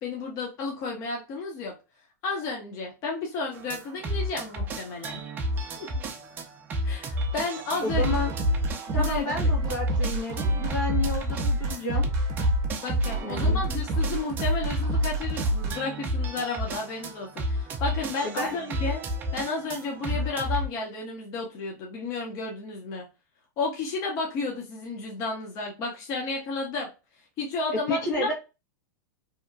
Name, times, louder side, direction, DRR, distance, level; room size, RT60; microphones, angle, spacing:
voice 1, 0.0-1.7 2.2-5.2 5.8-6.0 6.8-8.1 8.9-9.4 12.8-19.0 19.3-23.1 23.6-26.9 27.4-28.3, left 3 dB, 35° left, 0 dB, 0.6 m, -32 dB
sound 1, 3.5-20.7, equal, 20° right, 0.4 m, -32 dB
voice 2, 7.8-8.3 8.9-12.0 13.2-13.6 18.2-18.6 20.1-20.2 27.9-28.3, left 2 dB, 80° left, -1 dB, 1.1 m, -31 dB
sound 2, 7.9-15.7, right 1 dB, 40° right, 0.8 m, -27 dB
2.8 x 2.2 x 2.4 m, 0.29 s
supercardioid pair, 150°, 10 cm